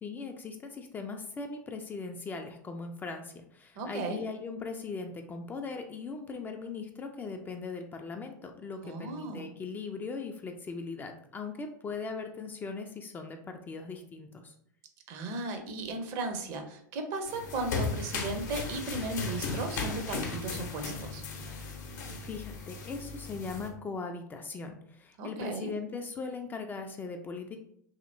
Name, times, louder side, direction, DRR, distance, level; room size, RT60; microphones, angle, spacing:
voice 1, 0.0-14.5 22.2-27.6, left 4 dB, 20° left, 4 dB, 0.3 m, -39 dB
voice 2, 3.8-4.2 8.8-9.5 15.1-21.2 25.2-25.7, right 3 dB, 45° right, 5 dB, 0.6 m, -36 dB
sound 1, 17.3-23.7, left 4 dB, 65° left, 0.7 m, -36 dB
2.8 x 2.8 x 2.5 m, 0.67 s
figure-of-eight pair, 90°, 10 cm